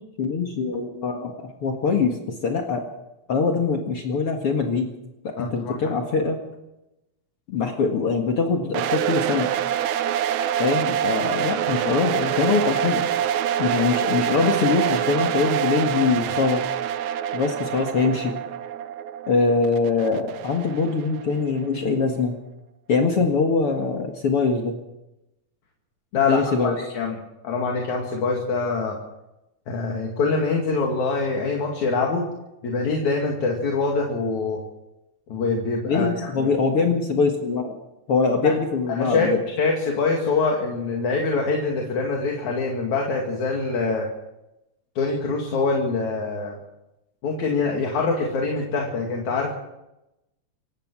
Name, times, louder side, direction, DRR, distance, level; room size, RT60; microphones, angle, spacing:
voice 1, 0.2-2.2 2.4-2.8 3.3-4.9 5.2-6.4 7.5-9.5 10.6-13.0 13.6-16.6 17.3-18.3 19.3-22.4 22.9-24.8 26.3-26.8 35.9-37.7 38.1-39.4, left 4 dB, 50° left, 2 dB, 2.6 m, -23 dB
voice 2, 5.4-5.9 26.1-27.2 27.4-29.0 29.7-32.3 32.6-34.6 35.3-36.5 38.4-38.5 38.9-44.1 45.0-46.6 47.2-49.5, left 4 dB, 70° left, 0 dB, 3.7 m, -24 dB
sound 1, 8.7-21.6, right 10 dB, 75° right, 2.1 m, -26 dB
27.5 x 15.5 x 6.2 m, 0.93 s
omnidirectional pair, 3.5 m